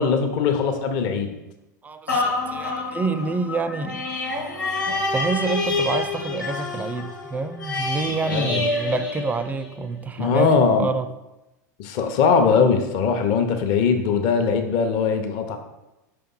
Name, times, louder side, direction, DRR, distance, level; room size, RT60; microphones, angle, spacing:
voice 1, 0.0-1.3 8.3-8.6 10.2-10.9 11.8-15.6, left 5 dB, 50° left, 6 dB, 0.8 m, -20 dB
voice 2, 1.8-4.1 4.9-11.1, right 4 dB, 15° right, 11 dB, 0.4 m, -27 dB
sound 1, 2.1-9.9 10.4-10.5, left 3 dB, 90° left, 1.4 m, -27 dB
5.3 x 3.4 x 5.6 m, 0.99 s
hypercardioid pair, 90°, 10 cm